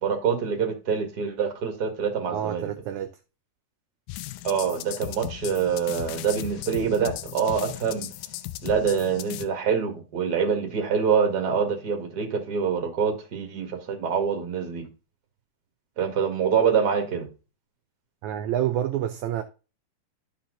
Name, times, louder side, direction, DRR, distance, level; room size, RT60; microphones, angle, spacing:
voice 1, 0.0-2.7 4.4-8.1 8.6-14.9 16.0-17.3, right 6 dB, 35° right, 1.9 m, -25 dB
voice 2, 2.3-3.1 18.2-19.4, right 11 dB, 75° right, 1.8 m, -28 dB
sound 1, 4.1-9.5, left 15 dB, 90° left, 2.3 m, -37 dB
12.5 x 4.4 x 3.9 m
omnidirectional pair, 4.0 m